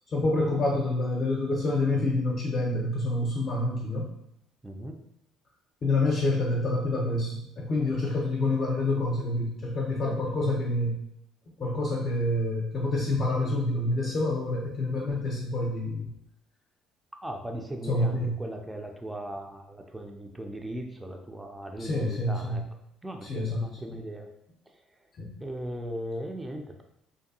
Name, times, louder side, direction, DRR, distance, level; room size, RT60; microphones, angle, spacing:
voice 1, 0.1-4.1 5.8-11.0 11.6-16.1 17.9-18.3 21.8-22.6 23.2-23.7 25.2-25.3, left 2 dB, 45° left, -2 dB, 0.6 m, -27 dB
voice 2, 4.6-5.0 10.0-10.2 17.2-22.6 23.0-24.3 25.4-26.8, right 1 dB, 10° right, 3 dB, 0.4 m, -38 dB
2.6 x 2.2 x 2.6 m, 0.77 s
figure-of-eight pair, 55°, 0 cm